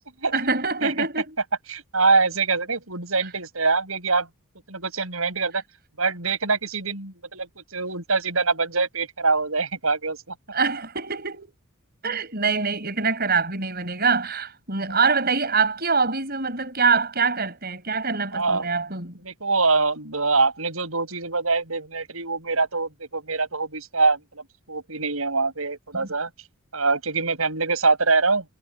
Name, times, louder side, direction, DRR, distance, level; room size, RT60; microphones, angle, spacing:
voice 1, 0.3-1.4 10.5-11.5 12.0-19.2 25.9-26.1, right 4 dB, 45° right, 7.6 m, -24 dB
voice 2, 1.7-4.3 4.7-5.6 6.0-10.3 14.9-15.0 18.3-18.7 19.2-26.3 26.7-28.4, right 4 dB, 75° right, 7.4 m, -24 dB
head